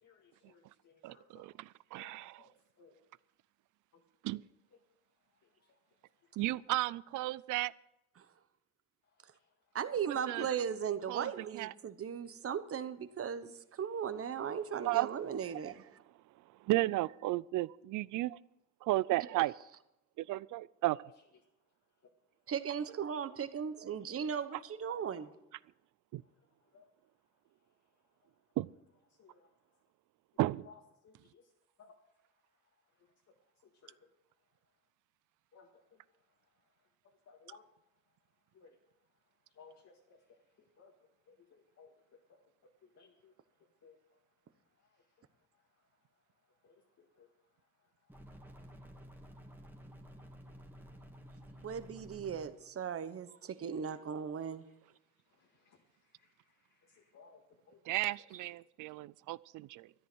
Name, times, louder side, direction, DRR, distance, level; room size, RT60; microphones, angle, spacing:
voice 1, 0.0-1.5 2.0-2.5 2.8-3.0 10.4-10.5 26.7-26.8 29.2-29.4 31.0-31.4 31.8-31.9 33.8-33.9 35.5-35.7 37.3-37.6 38.6-38.7 39.6-39.9 40.8-40.9 41.3-41.4 41.8-41.9 43.0-43.3 43.8-44.0 46.6-46.7 47.2-47.3 55.7-55.8 56.9-57.4 57.7-57.8, left 6 dB, 60° left, 0 dB, 1.9 m, -59 dB
voice 2, 1.0-2.5 4.2-4.4 6.4-7.7 10.1-10.5 11.1-11.7 14.8-15.1 15.6-15.7 16.1-18.4 18.8-19.5 20.2-21.1 23.8-23.9 24.9-25.0 26.1-26.2 28.6-28.7 30.4-30.7 57.8-59.9, right 17 dB, 80° right, 21 dB, 0.5 m, -34 dB
voice 3, 9.7-15.8 22.5-25.3 51.6-54.6, right 7 dB, 50° right, 12 dB, 1.1 m, -37 dB
sound 1, 48.1-52.5, equal, 5° right, 2.1 m, -53 dB
13.5 x 10.5 x 6.2 m, 0.88 s
cardioid pair, 90°, 30 cm